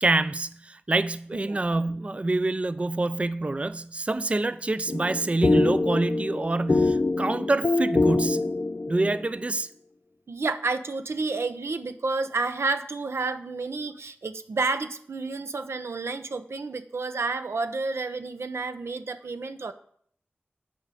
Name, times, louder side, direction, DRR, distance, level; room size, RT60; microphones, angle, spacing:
voice 1, 0.0-8.5 8.9-9.7, right 2 dB, 30° right, 0.4 m, -26 dB
sound 1, 4.9-9.2, left 3 dB, 50° left, 0.5 m, -24 dB
voice 2, 10.3-19.7, right 3 dB, 85° right, 0.7 m, -30 dB
10.0 x 4.9 x 6.8 m
wide cardioid pair, 55°, 4 cm